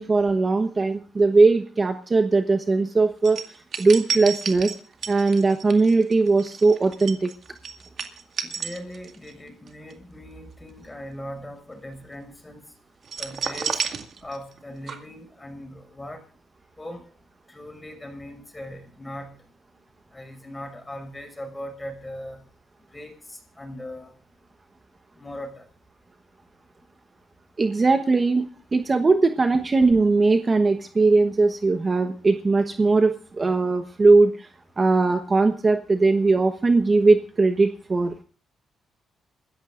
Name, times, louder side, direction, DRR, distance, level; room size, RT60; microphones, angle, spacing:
voice 1, 0.0-3.4 3.8-4.7 5.1-7.3 27.6-34.5 34.8-38.1, right 3 dB, 30° right, 7 dB, 1.1 m, -19 dB
sound 1, 3.2-9.3 9.7-9.9 13.1-14.6 14.9-15.0, right 6 dB, 55° right, 2.0 m, -31 dB
voice 2, 8.1-12.8 13.2-13.9 14.2-16.3 16.6-17.1 17.5-19.5 20.1-22.5 22.8-24.1 25.1-25.7, left 1 dB, 15° left, 5 dB, 5.9 m, -39 dB
27.5 x 14.5 x 2.6 m, 0.40 s
cardioid pair, 90°, 0 cm